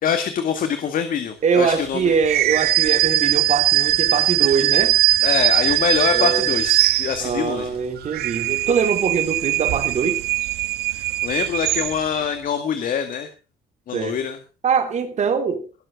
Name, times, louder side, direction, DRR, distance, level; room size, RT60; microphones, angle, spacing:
voice 1, 0.0-2.1 5.2-7.7 10.9-13.3 13.9-14.4, left 7 dB, 55° left, 8 dB, 2.0 m, -24 dB
voice 2, 1.4-5.0 6.1-6.5 7.2-10.2 13.9-14.2 14.6-15.6, right 6 dB, 45° right, 7 dB, 3.3 m, -22 dB
sound 1, 2.2-7.5 8.0-12.2, right 15 dB, 70° right, 0.6 m, -20 dB
20.0 x 7.8 x 4.8 m, 0.34 s
cardioid pair, 110°, 17 cm